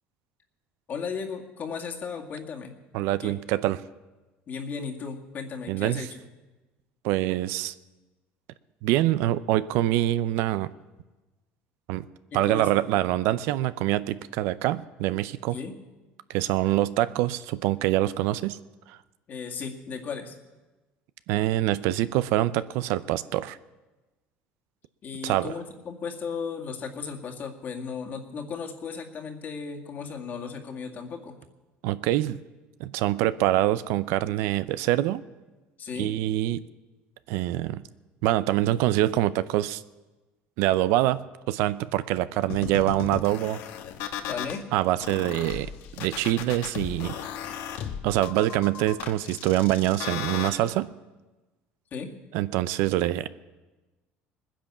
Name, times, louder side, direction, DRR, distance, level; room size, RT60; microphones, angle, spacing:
voice 1, 0.9-2.8 3.2-3.4 4.5-6.2 12.3-13.0 15.5-15.8 19.3-20.4 25.0-31.4 35.8-36.1 44.2-44.7 51.9-52.1, left 5 dB, 45° left, 2 dB, 2.1 m, -35 dB
voice 2, 2.9-3.8 5.7-6.1 7.0-7.7 8.8-10.7 11.9-12.0 12.3-15.6 16.3-18.6 21.3-23.6 25.2-25.5 31.8-32.4 32.8-35.2 36.0-36.6 37.3-37.8 38.2-39.8 40.6-43.6 44.7-45.7 46.0-47.3 48.0-50.9 52.3-53.3, right 14 dB, 80° right, 15 dB, 0.6 m, -25 dB
sound 1, 42.5-44.6 45.0-50.5, left 9 dB, 75° left, 1.3 m, -35 dB
19.5 x 10.0 x 7.2 m, 1.2 s
cardioid pair, 115°, 4 cm